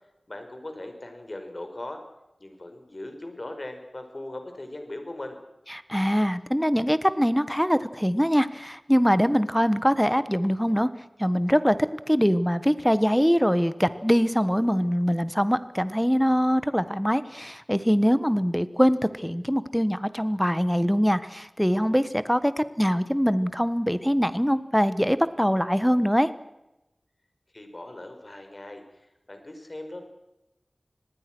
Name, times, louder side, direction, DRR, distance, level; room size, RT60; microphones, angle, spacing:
voice 1, 0.3-2.0 2.4-5.4 27.5-30.0, left 1 dB, 45° left, 6 dB, 5.2 m, -39 dB
voice 2, 5.9-10.9 11.2-26.3, equal, ahead, 14 dB, 1.4 m, -23 dB
26.0 x 20.0 x 6.3 m, 0.95 s
wide cardioid pair, 55°, 0 cm